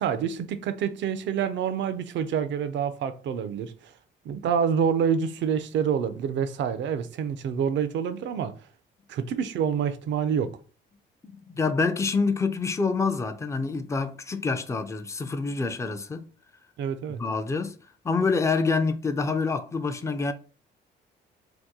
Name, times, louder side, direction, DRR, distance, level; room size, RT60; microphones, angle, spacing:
voice 1, 0.0-3.9 4.2-8.5 9.1-10.5 16.8-17.2, right 7 dB, 65° right, 0.5 m, -27 dB
voice 2, 11.2-16.3 17.1-17.7 18.0-20.3, left 4 dB, 15° left, 0.4 m, -27 dB
2.8 x 2.2 x 3.5 m
cardioid pair, 90°, 20 cm